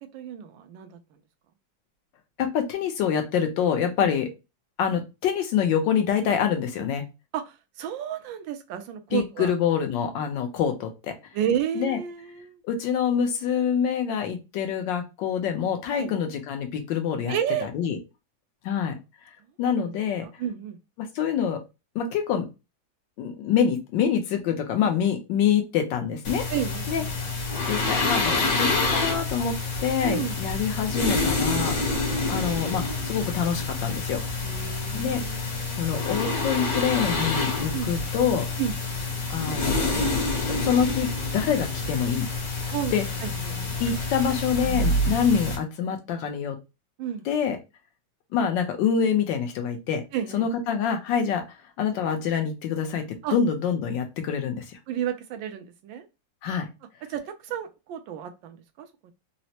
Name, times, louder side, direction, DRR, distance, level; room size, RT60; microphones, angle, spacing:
voice 1, 0.0-1.0 4.0-4.1 7.3-9.5 11.3-12.6 16.0-16.1 17.3-17.7 20.4-20.8 26.5-27.1 30.0-30.4 34.4-35.9 37.7-37.9 38.6-38.7 42.7-43.6 47.0-47.3 50.1-50.5 53.2-53.4 54.9-56.1 57.1-59.1, right 9 dB, 80° right, 1.3 m, -31 dB
voice 2, 2.4-4.3 4.8-7.1 9.1-11.1 11.7-12.0 12.6-17.3 17.7-18.0 18.6-18.9 19.6-20.3 21.0-21.6 21.9-22.5 23.2-26.4 26.9-27.0 27.7-29.6 29.8-34.2 34.9-35.2 35.8-38.4 39.3-40.1 40.5-42.3 42.9-43.0 43.8-46.6 47.2-47.6 48.3-50.0 50.3-51.4 51.8-54.8 56.4-56.7, left 7 dB, 75° left, 1.4 m, -26 dB
sound 1, 26.2-45.6, left 2 dB, 55° left, 1.4 m, -27 dB
4.0 x 2.1 x 2.8 m
omnidirectional pair, 2.1 m